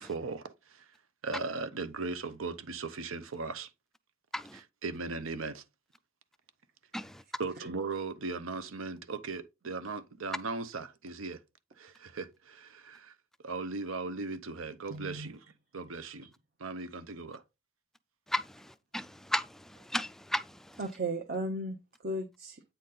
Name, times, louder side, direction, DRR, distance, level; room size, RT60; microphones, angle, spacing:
voice 1, 0.0-0.8 1.2-3.7 4.5-5.6 7.4-11.4 11.8-13.1 13.4-15.4 15.7-16.3 16.6-17.4, right 3 dB, 85° right, 0.8 m, -38 dB
voice 2, 14.9-15.3 20.8-22.6, right 1 dB, 50° right, 0.8 m, -36 dB
voice 3, 18.3-20.8, left 1 dB, ahead, 0.3 m, -35 dB
8.7 x 4.1 x 3.8 m
head